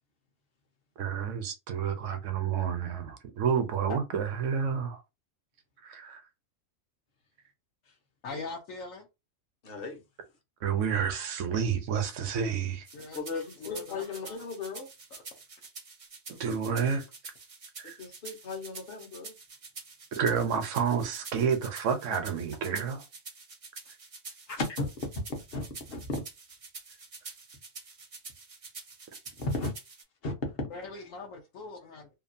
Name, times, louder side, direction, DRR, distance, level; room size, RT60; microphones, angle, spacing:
voice 1, 1.0-5.0 5.8-6.2 10.6-12.9 16.4-17.0 17.8-18.0 20.1-23.0, right 7 dB, 70° right, 1.0 m, -29 dB
voice 2, 8.2-9.1 12.9-14.5 16.3-16.4 24.5-24.6 30.7-32.1, left 3 dB, 75° left, 1.0 m, -41 dB
voice 3, 9.6-10.0 13.1-14.9 17.8-19.3 24.8-24.9 25.3-26.1 29.4-29.7 30.2-30.5 30.9-31.0, left 3 dB, 50° left, 1.0 m, -36 dB
sound 1, 12.8-30.0, right 4 dB, 40° right, 0.5 m, -47 dB
2.9 x 2.4 x 2.5 m
omnidirectional pair, 1.4 m